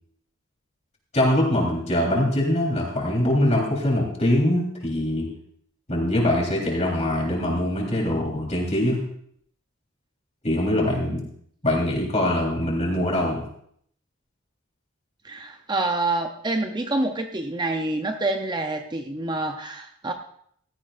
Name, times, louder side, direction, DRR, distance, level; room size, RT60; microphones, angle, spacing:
voice 1, 1.1-5.3 5.9-9.0 10.4-11.2 11.6-13.4, left 1 dB, 35° left, -2 dB, 3.6 m, -23 dB
voice 2, 15.2-20.1, right 2 dB, 20° right, 5 dB, 0.6 m, -27 dB
16.5 x 13.5 x 2.5 m, 0.66 s
head